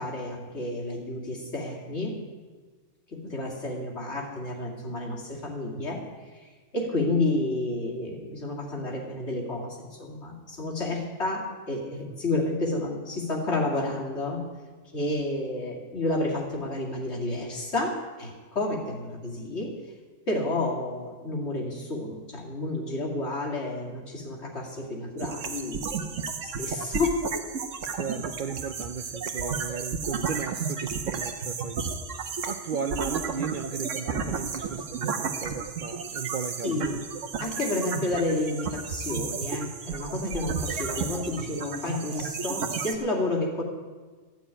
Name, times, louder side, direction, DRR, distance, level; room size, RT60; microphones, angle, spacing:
voice 1, 0.0-2.2 3.1-6.0 6.3-14.5 14.9-19.7 20.3-26.1 26.4-27.2 36.6-37.0 37.4-43.6, left 2 dB, 65° left, -1 dB, 2.7 m, -30 dB
sound 1, 25.2-42.9, right 5 dB, 80° right, 1.4 m, -33 dB
voice 2, 27.9-32.0 32.5-37.0, right 6 dB, 55° right, 8 dB, 0.6 m, -35 dB
14.5 x 6.3 x 9.8 m, 1.4 s
omnidirectional pair, 1.3 m